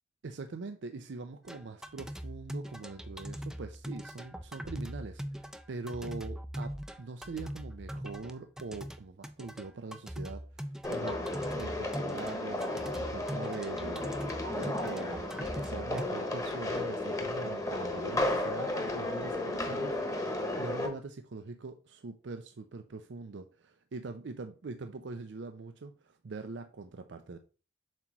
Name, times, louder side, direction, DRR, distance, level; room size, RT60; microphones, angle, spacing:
voice 1, 0.2-11.2 11.5-27.4, right 3 dB, 75° right, 0.5 m, -43 dB
sound 1, 1.5-16.0, equal, 5° right, 0.3 m, -41 dB
sound 2, 10.8-20.9, left 2 dB, 20° left, 1.1 m, -34 dB
7.5 x 3.0 x 5.9 m
head